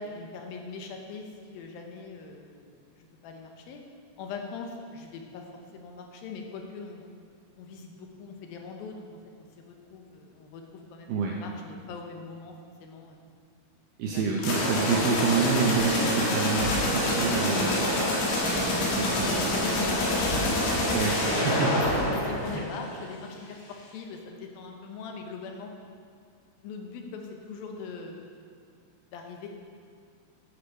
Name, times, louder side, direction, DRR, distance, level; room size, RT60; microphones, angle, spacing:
voice 1, 0.0-3.8 4.2-5.4 5.7-7.0 7.6-9.1 9.4-10.6 10.9-11.1 11.4-12.6 12.8-13.2 14.1-14.6 19.3-20.9 21.2-21.3 22.1-25.7 26.6-28.3 29.1-29.5, left 4 dB, 70° left, 2 dB, 2.5 m, -41 dB
voice 2, 11.1-11.4 14.0-20.0 20.9-22.6, right 5 dB, 80° right, -1 dB, 2.2 m, -29 dB
sound 1, 14.4-23.0, left 1 dB, 85° left, 4.1 m, -27 dB
Car / Slam, 15.6-16.1 16.5-17.0 17.3-17.9 18.5-18.8 19.2-19.7 20.2-20.6 21.1-21.5 21.8-22.2, left 1 dB, 20° left, 2.1 m, -37 dB
10.5 x 8.3 x 5.4 m, 2.1 s
omnidirectional pair, 4.9 m